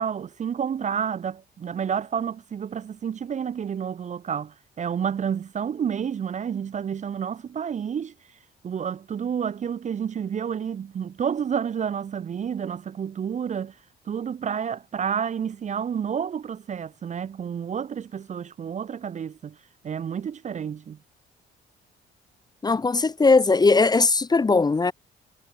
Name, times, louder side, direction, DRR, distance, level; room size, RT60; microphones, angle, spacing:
voice 1, 0.0-8.1 8.6-13.7 14.1-19.6 19.8-21.0, right 7 dB, 35° right, 0.5 m, -30 dB
voice 2, 22.6-24.9, left 3 dB, 20° left, 0.6 m, -19 dB
cardioid pair, 90°, 20 cm